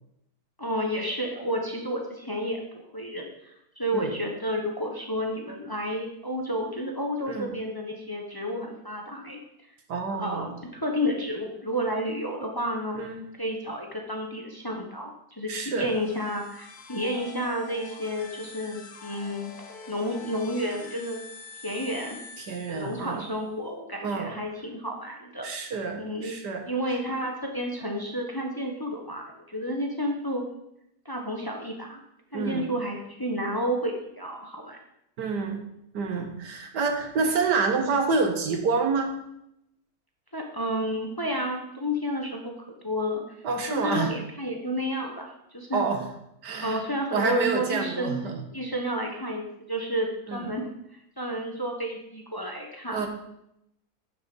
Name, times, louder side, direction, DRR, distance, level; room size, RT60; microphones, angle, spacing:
voice 1, 0.6-9.4 10.2-13.1 13.4-19.5 19.9-21.2 21.6-22.2 22.7-25.6 26.0-26.3 26.7-30.4 31.0-32.0 32.3-34.8 40.3-42.5 42.8-43.2 43.7-45.8 46.6-48.2 48.5-50.7 51.2-53.1, equal, 15° left, 1 dB, 1.2 m, -31 dB
voice 2, 9.9-10.5 12.9-13.2 15.5-15.9 22.4-23.3 24.0-24.3 25.4-26.7 32.3-32.7 35.2-35.6 35.9-39.1 43.4-44.1 45.7-46.0 46.4-46.8 47.1-48.4 50.3-50.5 52.9-53.1, right 4 dB, 85° right, 4 dB, 2.0 m, -28 dB
sound 1, 15.6-23.3, left 4 dB, 70° left, 1.9 m, -46 dB
10.5 x 6.8 x 5.5 m, 0.80 s
omnidirectional pair, 1.7 m